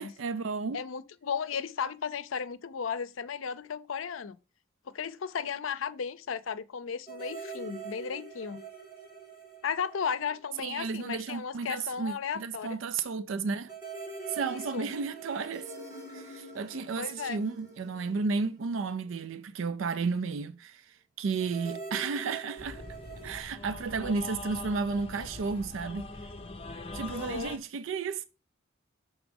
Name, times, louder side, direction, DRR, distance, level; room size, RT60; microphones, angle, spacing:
voice 1, 0.0-0.8 10.6-13.7 14.3-15.7 16.1-22.8 23.2-26.1 26.9-28.2, right 4 dB, 75° right, 0.4 m, -33 dB
voice 2, 0.7-4.4 4.9-8.6 9.6-12.8 14.4-14.9 17.0-17.4 27.1-27.5, left 6 dB, 80° left, 0.5 m, -35 dB
sound 1, 7.1-10.8 11.1-11.2 13.7-19.1 21.4-23.4, right 4 dB, 20° right, 2.2 m, -44 dB
sound 2, 22.6-27.6, left 2 dB, 30° left, 0.6 m, -42 dB
6.1 x 3.6 x 5.2 m
head